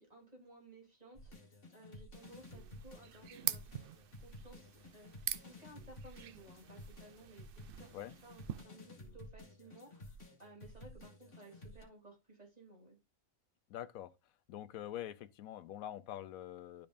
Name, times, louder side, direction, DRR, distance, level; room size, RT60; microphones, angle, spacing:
voice 1, 0.0-3.6 4.2-13.0, right 1 dB, 30° right, 3.3 m, -58 dB
sound 1, 1.1-11.8, left 1 dB, 60° left, 2.5 m, -53 dB
sound 2, 2.1-8.6, right 10 dB, 60° right, 0.6 m, -45 dB
voice 2, 13.7-14.1 14.5-16.9, left 12 dB, 90° left, 1.1 m, -45 dB
12.0 x 5.2 x 2.5 m
omnidirectional pair, 1.4 m